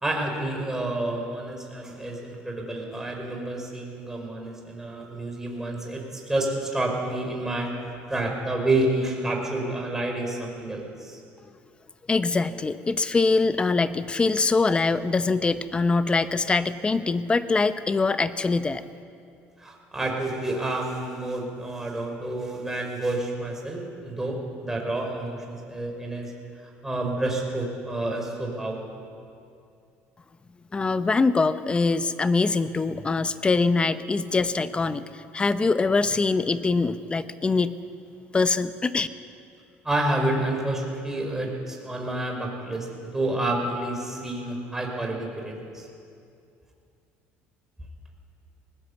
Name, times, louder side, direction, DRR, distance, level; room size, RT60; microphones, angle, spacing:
voice 1, 0.0-11.2 19.6-26.3 26.8-29.0 39.8-45.9, right 2 dB, 10° right, 1 dB, 5.1 m, -29 dB
voice 2, 12.1-18.8 30.7-35.0 35.3-37.8 38.3-39.1, left 3 dB, 20° left, 12 dB, 0.9 m, -23 dB
20.0 x 19.5 x 8.2 m, 2.4 s
cardioid pair, 115°, 5 cm